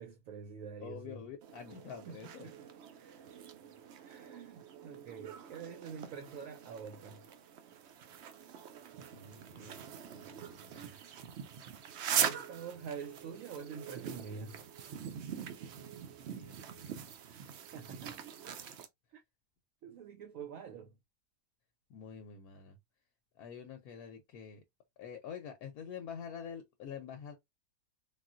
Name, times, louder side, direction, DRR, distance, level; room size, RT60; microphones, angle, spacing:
voice 1, 0.0-1.3 2.1-2.7 2.9-3.3 4.0-7.2 10.7-11.4 12.2-14.6 17.7-18.7 19.1-19.2 19.8-21.0, right 6 dB, 70° right, 0.9 m, -47 dB
voice 2, 0.8-2.5 9.1-11.0 16.3-17.1 21.9-22.8 23.3-24.6 25.0-27.4, left 7 dB, 70° left, 1.1 m, -47 dB
sound 1, 1.4-18.9, right 8 dB, 90° right, 0.5 m, -42 dB
3.6 x 2.4 x 2.4 m
omnidirectional pair, 1.7 m